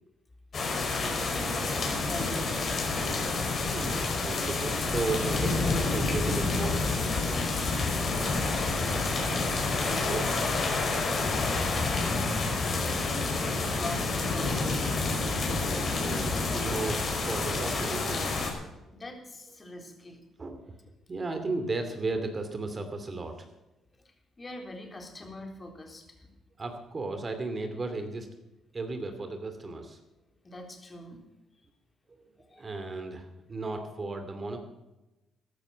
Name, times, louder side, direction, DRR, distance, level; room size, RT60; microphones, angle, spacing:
sound 1, 0.5-18.5, left 3 dB, 45° left, 4.9 m, -29 dB
voice 1, 0.5-2.7 4.7-5.0 5.3-5.4 8.0-9.5 10.7-11.1 11.5-12.3 12.5-14.9 18.9-20.2 24.4-26.3 30.4-31.2 32.5-32.8 33.5-33.6, left 2 dB, 25° left, 3 dB, 3.9 m, -42 dB
voice 2, 3.7-7.0 9.9-10.9 15.5-19.0 20.4-20.8 21.1-23.5 26.6-28.3 28.7-30.0 32.6-34.6, right 3 dB, 35° right, 7 dB, 2.6 m, -35 dB
14.5 x 12.5 x 6.3 m, 0.99 s
cardioid pair, 90°, 0 cm